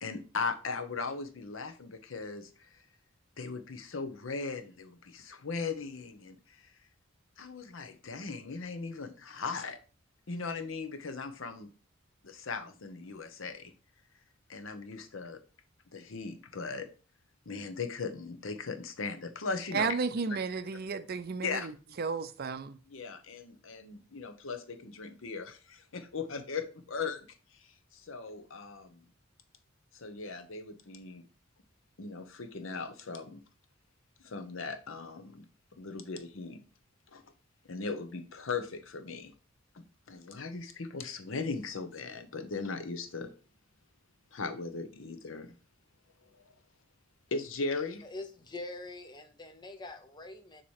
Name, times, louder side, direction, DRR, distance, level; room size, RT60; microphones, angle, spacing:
voice 1, 0.0-2.7 3.4-6.7 7.4-9.8 10.3-11.7 12.2-13.7 14.5-15.4 15.9-16.9 17.5-20.0 20.3-20.4 21.4-22.0 22.9-29.0 29.9-31.2 32.0-33.4 34.2-35.5 35.7-36.6 37.1-37.3 37.7-39.3 39.7-43.3 44.3-45.5 46.2-46.4 47.3-48.0, left 4 dB, 75° left, 0.8 m, -38 dB
voice 2, 19.7-21.6 22.0-22.8, right 5 dB, 50° right, 0.5 m, -32 dB
voice 3, 48.0-50.6, left 2 dB, 20° left, 0.7 m, -44 dB
7.1 x 2.9 x 4.7 m
head